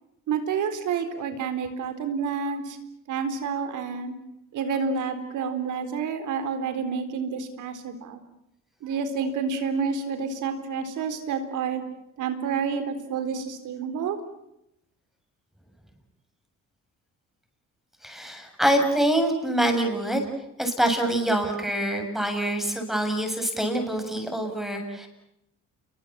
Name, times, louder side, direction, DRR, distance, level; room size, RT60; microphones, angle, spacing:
voice 1, 0.3-2.8 3.1-4.1 4.5-8.2 8.8-11.8 12.2-14.2, right 6 dB, 80° right, 9 dB, 4.1 m, -29 dB
voice 2, 18.0-20.3 20.6-25.1, right 1 dB, ahead, 4 dB, 7.4 m, -25 dB
29.0 x 23.0 x 7.6 m, 0.83 s
cardioid pair, 90°, 30 cm